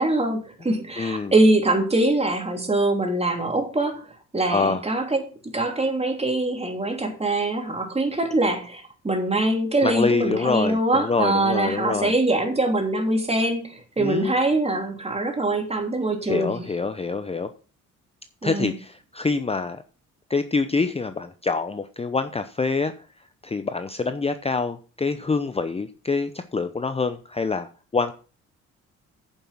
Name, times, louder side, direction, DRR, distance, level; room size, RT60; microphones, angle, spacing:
voice 1, 0.0-4.0 4.3-16.5 18.4-18.7, right 2 dB, 20° right, 3.2 m, -23 dB
voice 2, 1.0-1.3 4.5-4.8 9.8-12.1 14.0-14.4 16.2-17.5 18.4-19.8 20.3-23.1 23.4-28.1, left 4 dB, 20° left, 0.7 m, -26 dB
9.2 x 7.2 x 6.1 m
cardioid pair, 90°, 30 cm